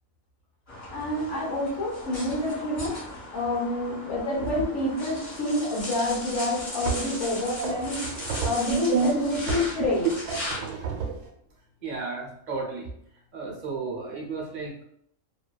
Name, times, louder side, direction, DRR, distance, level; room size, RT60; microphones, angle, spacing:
sound 1, 0.7-10.7, left 1 dB, 35° left, 1.0 m, -37 dB
voice 1, 0.9-3.0 3.3-8.0 8.4-10.1, left 1 dB, 60° left, -3 dB, 1.0 m, -28 dB
sound 2, 6.1-6.2 6.8-7.2 7.6-8.7 9.5-9.8 10.3-11.3, right 5 dB, 75° right, 1.0 m, -32 dB
voice 2, 8.7-9.2 11.8-12.9 13.3-14.8, right 4 dB, 45° right, -3 dB, 0.6 m, -30 dB
2.6 x 2.2 x 2.2 m, 0.68 s
omnidirectional pair, 1.4 m